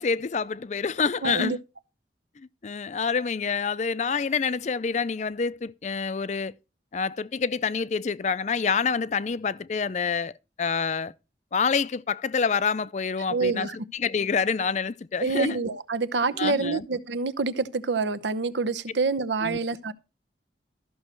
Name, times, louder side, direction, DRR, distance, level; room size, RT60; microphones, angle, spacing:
voice 1, 0.0-1.6 2.6-6.5 6.9-10.3 10.6-11.1 11.5-15.6 16.4-16.8 19.4-19.6, left 5 dB, 40° left, 0.4 m, -27 dB
voice 2, 1.2-1.6 13.3-13.8 15.2-19.9, right 4 dB, 85° right, 0.9 m, -27 dB
13.5 x 6.3 x 4.5 m
head